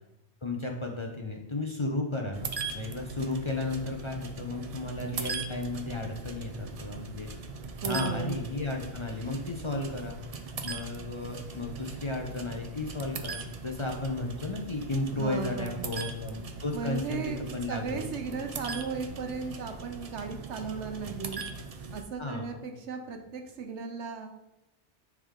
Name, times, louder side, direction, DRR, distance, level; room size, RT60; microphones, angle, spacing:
voice 1, 0.4-7.3 7.8-10.2 10.6-18.0 22.2-22.6, left 2 dB, 30° left, 1 dB, 0.6 m, -34 dB
sound 1, 2.3-22.0, right 4 dB, 45° right, 0.5 m, -40 dB
voice 2, 7.8-8.4 15.2-15.8 16.7-21.4 21.9-24.3, right 5 dB, 80° right, 5 dB, 1.1 m, -36 dB
10.0 x 3.7 x 3.6 m, 0.93 s
omnidirectional pair, 1.2 m